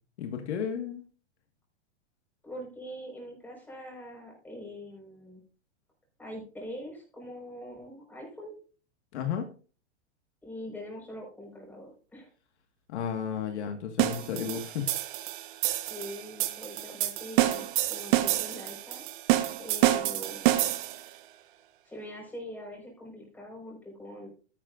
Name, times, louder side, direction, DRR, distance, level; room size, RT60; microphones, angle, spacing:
voice 1, 0.2-1.0 9.1-9.4 12.9-14.9, left 8 dB, 65° left, 4 dB, 1.9 m, -33 dB
voice 2, 2.4-5.4 6.2-8.5 10.4-12.3 15.7-19.1 19.6-20.5 21.9-24.3, equal, 5° left, -1 dB, 5.3 m, -43 dB
sound 1, 14.0-21.1, right 15 dB, 45° right, 1.3 m, -28 dB
13.0 x 11.0 x 2.6 m, 0.38 s
hypercardioid pair, 150°, 36 cm